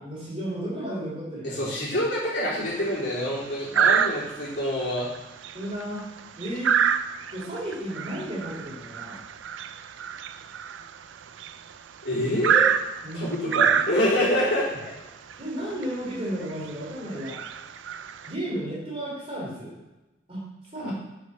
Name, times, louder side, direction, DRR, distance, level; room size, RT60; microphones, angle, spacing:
voice 1, 0.0-1.7 3.6-3.8 5.5-6.0 6.4-6.8 7.3-9.2 13.0-13.8 15.4-17.4 18.2-19.8 20.3-20.5 20.7-20.9, right 1 dB, 30° right, -4 dB, 3.2 m, -33 dB
voice 2, 1.4-5.1 12.0-12.7 13.1-15.0 20.8-20.9, equal, 65° left, -6 dB, 3.5 m, -26 dB
sound 1, 2.6-3.0 3.7-4.6 5.0-5.2 5.4-11.7 12.4-14.3 15.3-15.4 15.8-15.9 16.5-16.7 17.2-18.3, right 7 dB, 80° right, 0.4 m, -26 dB
7.4 x 6.1 x 5.5 m, 1.0 s
head